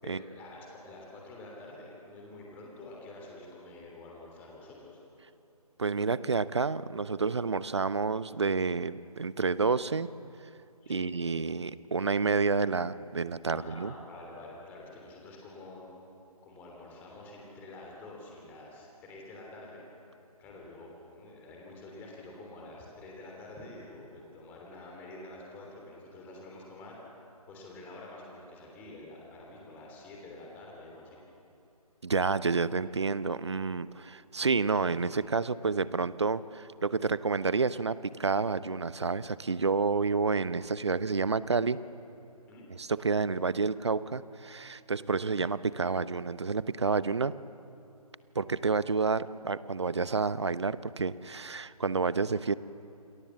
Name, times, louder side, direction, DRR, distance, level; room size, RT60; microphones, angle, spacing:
voice 1, 0.0-5.0 10.8-11.1 13.5-15.9 16.4-19.9 20.4-27.0 27.5-31.2 42.5-42.7, left 2 dB, 10° left, -1 dB, 3.2 m, -48 dB
voice 2, 5.8-10.1 10.9-13.9 32.0-41.8 42.7-47.4 48.3-52.5, right 4 dB, 45° right, 16 dB, 0.8 m, -29 dB
28.5 x 22.0 x 7.1 m, 2.6 s
figure-of-eight pair, 150°, 20 cm